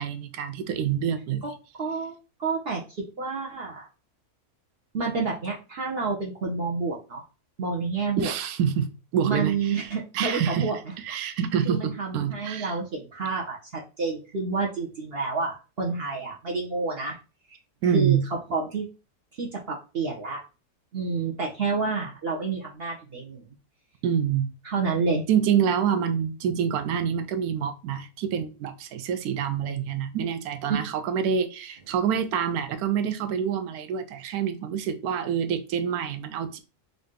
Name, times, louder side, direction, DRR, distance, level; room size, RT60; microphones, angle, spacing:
voice 1, 0.0-1.5 8.2-10.7 11.0-12.7 17.8-18.2 24.0-24.5 25.3-36.6, right 8 dB, 75° right, 1.0 m, -27 dB
voice 2, 1.8-2.8 3.2-3.9 4.9-7.2 7.6-8.3 9.2-10.8 11.6-17.2 17.5-17.6 17.9-18.2 18.5-18.9 19.4-20.4 20.9-23.4 24.6-25.3 30.7-30.8, right 4 dB, 50° right, 0.8 m, -29 dB
3.7 x 2.6 x 3.6 m
omnidirectional pair, 1.6 m